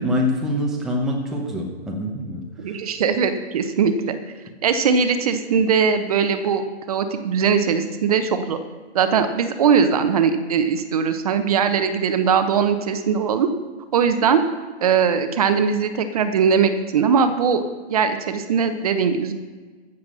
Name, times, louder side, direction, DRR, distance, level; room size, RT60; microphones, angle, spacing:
voice 1, 0.0-2.8, left 1 dB, ahead, -1 dB, 0.8 m, -25 dB
voice 2, 2.6-4.2 4.6-8.6 8.9-13.5 13.9-14.4 14.8-17.6 17.9-19.3, right 6 dB, 35° right, 9 dB, 0.9 m, -20 dB
14.5 x 7.3 x 6.3 m, 1.4 s
hypercardioid pair, 150°, 33 cm